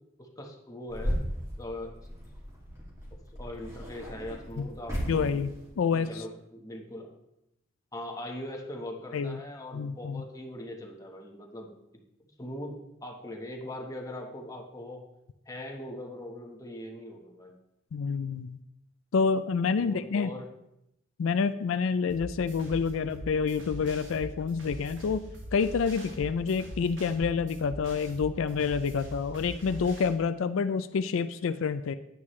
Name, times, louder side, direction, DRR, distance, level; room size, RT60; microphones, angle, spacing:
voice 1, 0.2-1.2 1.6-1.9 3.3-5.4 5.9-7.1 7.9-11.7 12.4-15.0 15.4-17.6 19.8-20.5, left 1 dB, 15° left, 1 dB, 1.2 m, -41 dB
sound 1, 0.9-5.8, equal, 15° right, 2.4 m, -36 dB
voice 2, 5.1-6.2 9.1-9.4 9.7-10.2 17.9-18.6 19.1-20.3 21.2-31.9, left 5 dB, 85° left, 12 dB, 0.4 m, -28 dB
sound 2, 22.1-30.1, right 1 dB, 70° right, 2.0 m, -42 dB
9.6 x 9.3 x 3.2 m, 0.85 s
head